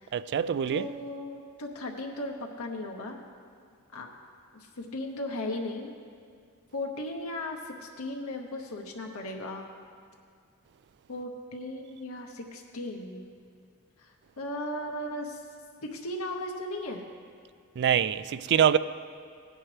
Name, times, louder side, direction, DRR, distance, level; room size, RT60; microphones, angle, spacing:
voice 1, 0.1-0.9 17.8-18.8, right 9 dB, 50° right, 0.3 m, -24 dB
voice 2, 0.7-3.2 3.9-4.1 4.5-5.9 6.7-9.7 11.1-13.2 14.0-15.4 15.8-17.0, left 1 dB, 75° left, 0.9 m, -36 dB
17.0 x 10.0 x 3.3 m
head